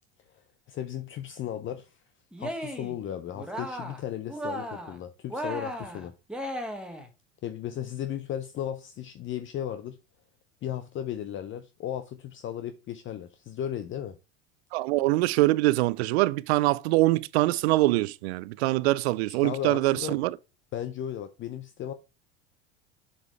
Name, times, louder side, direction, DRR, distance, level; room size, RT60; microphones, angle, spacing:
voice 1, 0.3-2.0 2.4-6.1 7.4-10.0 10.6-14.1 19.4-20.1 20.7-21.9, left 10 dB, 35° left, 0.6 m, -35 dB
Cheering, 2.3-3.0 3.3-4.0 4.3-5.0 5.3-7.1, equal, 5° right, 1.4 m, -36 dB
voice 2, 14.7-20.4, right 19 dB, 70° right, 0.5 m, -24 dB
7.1 x 5.2 x 3.1 m
hypercardioid pair, 80°, 34 cm